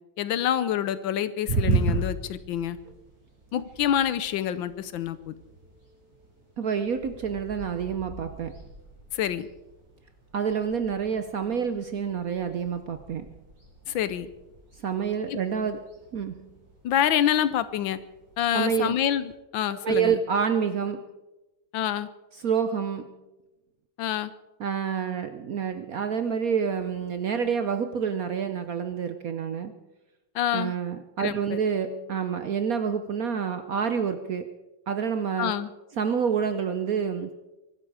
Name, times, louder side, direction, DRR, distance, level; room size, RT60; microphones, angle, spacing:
voice 1, 0.2-2.8 3.5-5.3 9.1-9.5 13.9-14.3 15.3-15.4 16.8-18.0 18.4-20.2 21.7-22.1 24.0-24.3 30.3-30.7 31.2-31.6 35.4-35.7, left 10 dB, 75° left, 15 dB, 1.4 m, -27 dB
sound 1, 1.5-19.3, right 3 dB, 45° right, 5.9 m, -37 dB
voice 2, 6.6-8.6 10.3-13.3 14.8-16.5 18.5-19.0 19.7-21.0 22.4-23.1 24.6-29.8 30.5-34.5 34.9-35.5 36.0-37.3, right 7 dB, 60° right, 10 dB, 0.9 m, -28 dB
23.5 x 12.0 x 4.8 m, 1.0 s
omnidirectional pair, 2.2 m